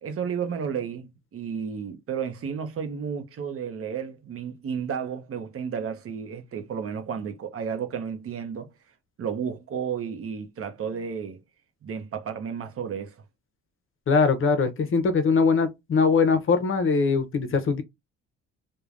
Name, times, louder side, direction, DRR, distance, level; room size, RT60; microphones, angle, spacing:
voice 1, 0.0-8.7 9.2-11.4 11.8-13.1, right 7 dB, 50° right, 0.7 m, -32 dB
voice 2, 14.1-17.8, left 4 dB, 45° left, 0.7 m, -22 dB
3.2 x 2.2 x 2.4 m
cardioid pair, 90°, 30 cm